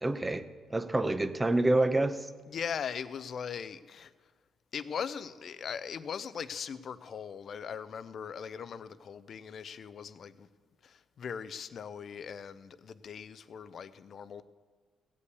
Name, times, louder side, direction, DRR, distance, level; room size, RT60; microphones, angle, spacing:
voice 1, 0.0-2.3, right 2 dB, 15° right, 0.8 m, -28 dB
voice 2, 2.5-4.1 4.7-10.5 10.8-14.4, left 7 dB, 55° left, 0.6 m, -40 dB
16.0 x 5.4 x 8.2 m
cardioid pair, 90°, 0 cm